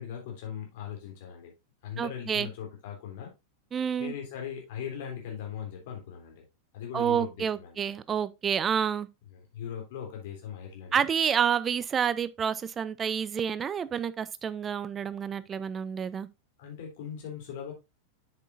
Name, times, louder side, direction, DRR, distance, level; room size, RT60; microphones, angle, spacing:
voice 1, 0.0-1.5 1.8-3.3 4.0-6.4 6.7-7.8 9.3-11.1 16.6-17.7, left 8 dB, 50° left, 3.5 m, -39 dB
voice 2, 2.0-2.5 3.7-4.1 6.9-9.1 10.9-16.3, right 8 dB, 20° right, 0.6 m, -29 dB
7.5 x 7.4 x 2.6 m
figure-of-eight pair, 90°, 0 cm